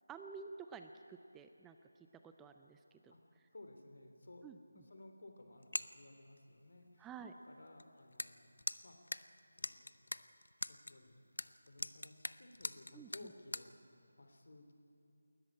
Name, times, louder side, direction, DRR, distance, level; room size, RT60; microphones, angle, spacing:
voice 1, 0.1-3.1 4.4-4.6 7.0-7.3 12.9-13.3, right 5 dB, 5° right, 7 dB, 0.4 m, -52 dB
voice 2, 3.5-4.4 4.7-7.1 7.4-8.5 8.8-9.0 9.6-9.9 10.7-14.7, left 2 dB, 65° left, 5 dB, 3.2 m, -57 dB
sound 1, 5.6-6.0 6.4-6.5 7.8-7.9 8.1-8.3 8.6-10.9 11.4-13.7, left 2 dB, 85° left, 0.6 m, -41 dB
19.5 x 13.5 x 9.7 m, 2.7 s
figure-of-eight pair, 170°, 0 cm